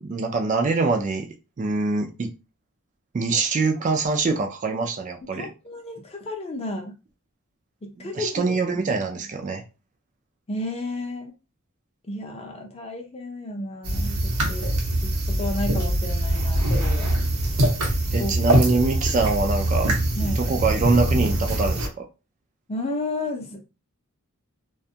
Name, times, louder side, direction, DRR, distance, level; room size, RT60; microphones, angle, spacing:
voice 1, 0.0-1.3 1.6-2.3 3.1-5.5 8.0-9.6 18.1-19.9 20.2-21.9, right 3 dB, 35° right, 0.3 m, -24 dB
voice 2, 5.3-6.9 7.8-8.6 10.5-11.3 12.1-14.2 14.5-14.7 15.0-17.2 18.2-18.4 20.2-20.4 22.7-23.6, left 2 dB, 25° left, 0.5 m, -32 dB
sound 1, 13.8-21.9, right 1 dB, 80° right, 0.8 m, -23 dB
2.5 x 2.3 x 2.7 m
head